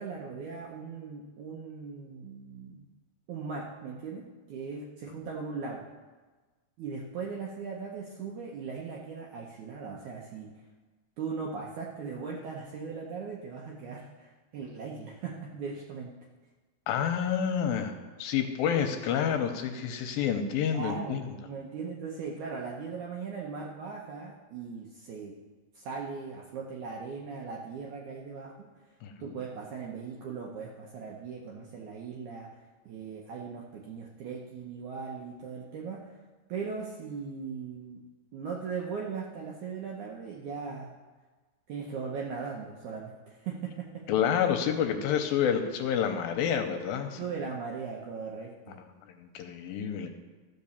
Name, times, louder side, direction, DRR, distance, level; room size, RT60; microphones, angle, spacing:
voice 1, 0.0-2.9 3.3-5.9 6.8-10.5 11.2-16.1 20.7-25.4 25.8-28.7 29.2-36.2 36.5-38.0 38.3-40.9 41.7-44.1 47.2-48.8, right 5 dB, 75° right, -1 dB, 1.8 m, -39 dB
voice 2, 16.9-17.9 18.2-21.2 29.0-29.1 44.1-47.2 49.2-50.1, left 8 dB, 80° left, 6 dB, 2.4 m, -28 dB
13.5 x 5.3 x 6.9 m, 1.3 s
omnidirectional pair, 4.5 m